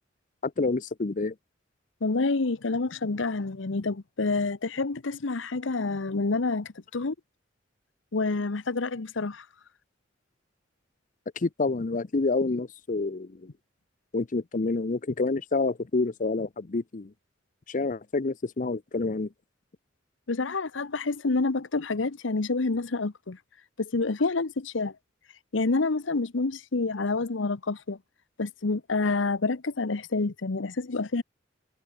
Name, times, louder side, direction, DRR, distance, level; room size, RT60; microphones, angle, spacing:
voice 1, 0.4-1.3 11.4-13.3 14.1-17.1 17.7-19.3, left 3 dB, 45° left, 0.6 m, -28 dB
voice 2, 2.0-7.1 8.1-9.4 20.3-23.4 23.8-24.9 25.5-28.0 28.4-31.2, left 3 dB, 75° left, 0.9 m, -28 dB
head